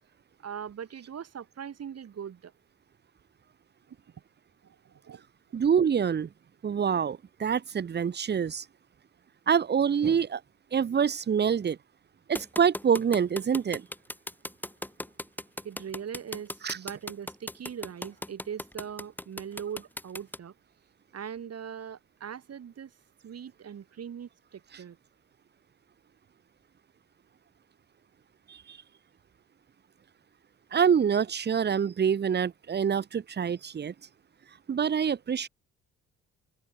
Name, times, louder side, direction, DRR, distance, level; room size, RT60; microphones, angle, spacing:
voice 1, 0.4-2.5 3.9-4.0 4.6-5.2 15.6-20.5 21.1-22.9 23.2-25.0, right 8 dB, 55° right, 8.0 m, -40 dB
voice 2, 5.5-6.3 6.6-8.6 9.5-10.4 10.7-11.8 12.3-13.9 16.6-16.8 28.5-28.8 30.7-33.9 34.7-35.5, right 7 dB, 35° right, 0.9 m, -26 dB
sound 1, 12.4-20.4, left 1 dB, 5° left, 2.1 m, -37 dB
open air
cardioid pair, 90°, 30 cm